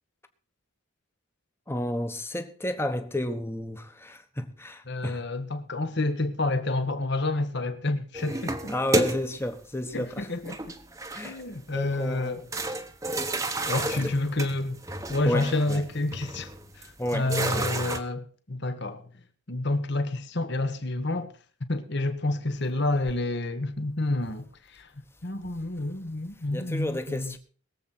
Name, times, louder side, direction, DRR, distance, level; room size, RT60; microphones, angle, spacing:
voice 1, 1.7-5.2 8.7-10.3 11.1-11.3 11.7-12.5 14.0-14.2 15.2-15.8 17.0-17.7 26.5-27.4, left 1 dB, 10° left, 1.1 m, -32 dB
voice 2, 4.9-8.7 9.9-10.6 11.2-12.4 13.6-14.8 15.1-16.5 16.8-19.1 19.5-21.3 21.7-27.3, left 2 dB, 50° left, 1.5 m, -29 dB
sound 1, 8.1-9.5 10.5-11.5 11.9-12.0 12.5-18.0, right 2 dB, 15° right, 1.0 m, -31 dB
22.0 x 7.8 x 4.4 m
head